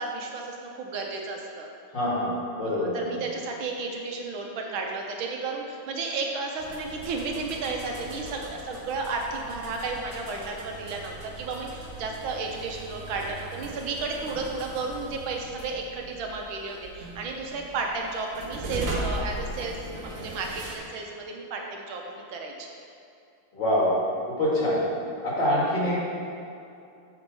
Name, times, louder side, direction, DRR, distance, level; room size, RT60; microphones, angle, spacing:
voice 1, 0.0-1.7 2.7-22.7, right 3 dB, 75° right, 1 dB, 1.5 m, -33 dB
voice 2, 1.9-3.0 23.5-23.9 24.3-24.8 25.2-26.1, left 1 dB, 60° left, -7 dB, 2.7 m, -25 dB
sound 1, 6.6-20.8, right 1 dB, 50° right, 1.2 m, -39 dB
7.4 x 4.6 x 5.3 m, 2.6 s
omnidirectional pair, 2.3 m